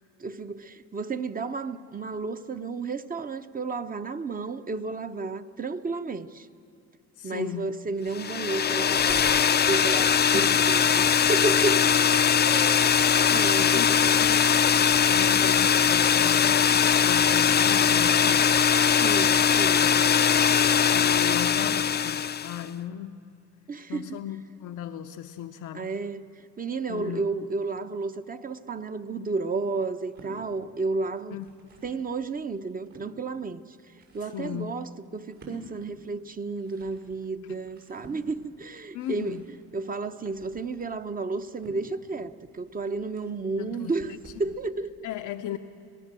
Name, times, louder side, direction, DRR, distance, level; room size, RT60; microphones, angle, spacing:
voice 1, 0.2-6.5 7.2-13.0 13.3-14.2 19.0-20.3 20.6-20.8 21.2-21.4 23.7-24.2 25.7-31.4 31.8-33.8 34.1-39.4 39.7-44.1 44.4-44.9, right 3 dB, 30° right, 0.9 m, -32 dB
voice 2, 7.2-7.7 10.2-10.5 13.1-18.7 20.9-23.3 23.9-25.9 26.9-27.3 31.3-31.5 34.2-34.8 37.5-37.6 38.9-39.5 43.6-44.2 45.0-45.6, left 10 dB, 80° left, 0.8 m, -37 dB
sound 1, 8.1-22.6, left 7 dB, 35° left, 0.5 m, -21 dB
sound 2, 29.9-30.4 31.1-32.0 32.5-33.1 33.7-44.5, right 1 dB, 75° right, 7.5 m, -52 dB
27.0 x 19.0 x 7.6 m
cardioid pair, 90°, 30 cm